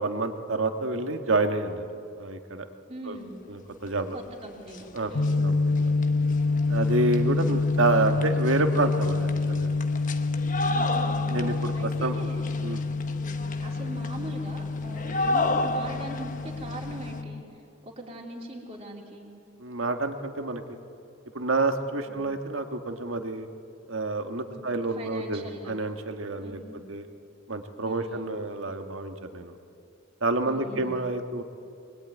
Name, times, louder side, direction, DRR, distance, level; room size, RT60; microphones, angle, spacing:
voice 1, 0.0-2.7 3.1-3.2 3.5-4.2 4.9-5.1 5.4-5.9 6.7-9.7 11.3-12.2 12.6-12.8 19.6-20.6 21.4-23.5 23.9-26.6 26.9-27.0 27.5-29.6 30.2-31.4, right 2 dB, 65° right, 6 dB, 1.7 m, -28 dB
voice 2, 2.9-3.4 4.1-5.5 7.3-7.5 10.7-11.4 11.7-12.5 13.1-17.4 17.8-19.3 22.1-22.3 24.5-25.7 26.4-26.8 27.8-28.3 30.4-31.0, right 1 dB, 30° right, -2 dB, 3.4 m, -41 dB
sound 1, 4.2-4.3 4.5-17.2, left 2 dB, 35° left, 1.1 m, -34 dB
sound 2, 5.1-17.4, left 3 dB, 85° left, 0.9 m, -27 dB
23.5 x 21.5 x 9.4 m, 2.5 s
head